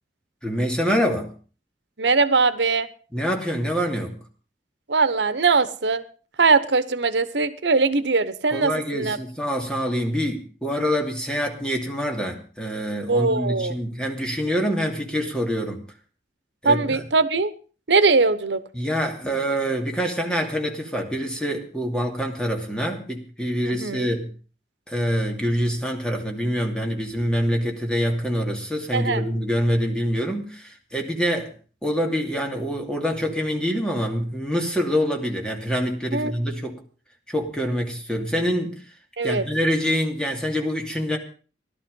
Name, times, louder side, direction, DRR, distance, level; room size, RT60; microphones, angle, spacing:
voice 1, 0.4-1.3 3.1-4.1 8.5-15.8 16.6-17.0 18.7-24.3 24.9-31.5 31.8-36.8 37.3-38.8 39.2-41.2, equal, 5° left, 2 dB, 2.7 m, -25 dB
voice 2, 2.0-2.9 4.9-6.0 6.4-9.2 13.1-13.8 16.6-17.5 17.9-18.6 23.6-24.1 28.9-29.3 36.1-36.3 39.2-39.4, right 4 dB, 90° right, 13 dB, 1.0 m, -21 dB
16.5 x 12.0 x 5.4 m, 0.39 s
head